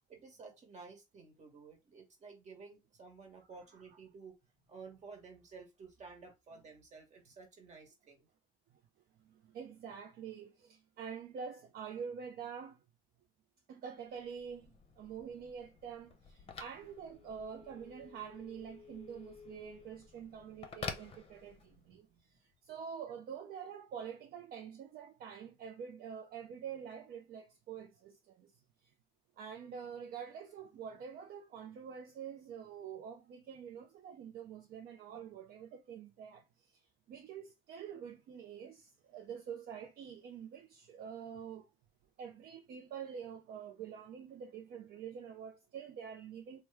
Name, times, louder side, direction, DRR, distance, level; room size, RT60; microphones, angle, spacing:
voice 1, 0.1-4.3 4.7-8.3 21.9-22.2, right 4 dB, 45° right, 1.3 m, -53 dB
voice 2, 9.3-12.8 13.7-22.1 22.6-28.5 29.4-36.4 37.1-41.7 42.2-46.6, right 7 dB, 65° right, 0.5 m, -46 dB
Telephone, 14.1-21.9, left 5 dB, 35° left, 0.6 m, -50 dB
3.0 x 2.2 x 3.4 m
cardioid pair, 110°, 17 cm